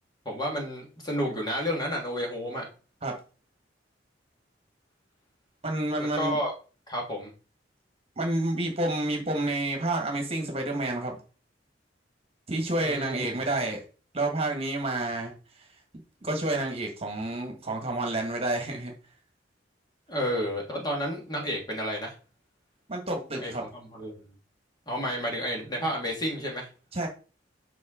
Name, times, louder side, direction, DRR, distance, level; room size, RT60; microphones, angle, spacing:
voice 1, 0.3-2.7 5.9-6.5 6.9-7.3 12.8-13.3 20.1-22.1 23.3-24.2 24.9-26.7, equal, 25° left, 0 dB, 1.9 m, -31 dB
voice 2, 5.6-6.4 8.2-11.2 12.5-13.8 14.1-15.3 16.2-18.9 22.9-23.6 26.9-27.1, right 2 dB, 35° right, 2 dB, 1.7 m, -29 dB
7.7 x 4.6 x 3.8 m, 0.36 s
head